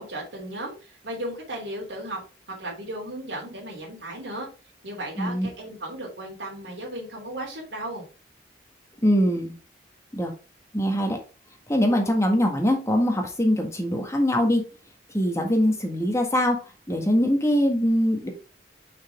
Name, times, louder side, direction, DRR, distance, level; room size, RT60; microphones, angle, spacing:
voice 1, 0.0-2.2 2.5-4.5 4.8-8.1, right 1 dB, 80° right, -3 dB, 3.1 m, -35 dB
voice 2, 5.2-5.5 9.0-9.5 10.1-10.3 10.7-11.2 11.7-14.6 15.1-16.6 16.9-18.3, equal, 15° left, 3 dB, 1.6 m, -22 dB
6.0 x 5.4 x 3.5 m, 0.33 s
head